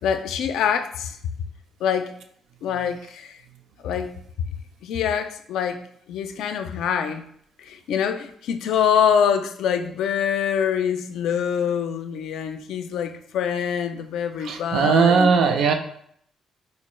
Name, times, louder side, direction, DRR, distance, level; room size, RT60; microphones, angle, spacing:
voice 1, 0.0-1.2 1.8-2.1 2.6-3.4 3.8-4.5 4.8-5.8 6.1-7.2 7.6-15.4, left 8 dB, 80° left, 8 dB, 0.3 m, -25 dB
voice 2, 14.4-15.7, right 5 dB, 75° right, 5 dB, 0.4 m, -18 dB
4.1 x 2.2 x 3.0 m, 0.67 s
cardioid pair, 90°, 0 cm